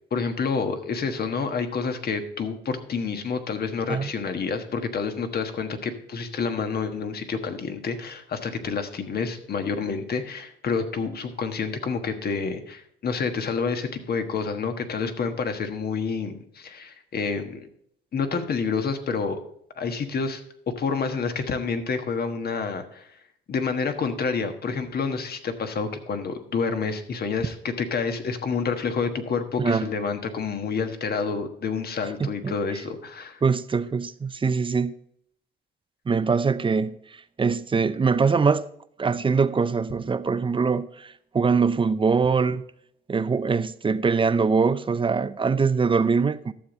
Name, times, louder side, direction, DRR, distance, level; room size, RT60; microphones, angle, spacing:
voice 1, 0.1-17.7 18.1-19.4 19.8-23.1 23.5-33.4, left 5 dB, 50° left, 1.4 m, -28 dB
voice 2, 29.6-29.9 32.2-32.5 33.4-34.9 36.1-38.7 39.0-42.7 43.1-46.5, right 5 dB, 25° right, 0.6 m, -23 dB
12.5 x 7.2 x 4.0 m
cardioid pair, 90°, 20 cm